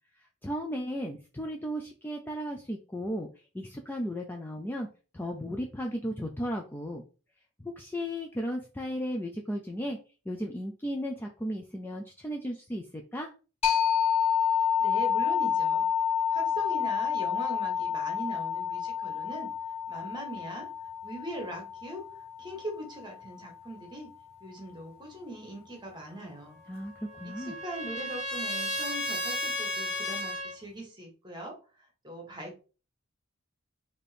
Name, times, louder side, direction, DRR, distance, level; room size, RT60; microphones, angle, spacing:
voice 1, 0.4-3.3 3.5-4.9 5.1-7.0 7.6-10.0 10.3-13.3 26.7-27.6, equal, 10° left, 2 dB, 0.3 m, -35 dB
sound 1, 13.6-23.0, left 8 dB, 30° left, 1.2 m, -29 dB
voice 2, 14.8-15.9 16.3-19.5 19.9-20.7 21.0-24.1 24.4-26.6 27.2-32.6, right 1 dB, 20° right, 1 dB, 1.2 m, -41 dB
Trumpet, 26.7-30.5, left 1 dB, 45° left, 1.8 m, -34 dB
4.2 x 2.8 x 3.3 m, 0.35 s
head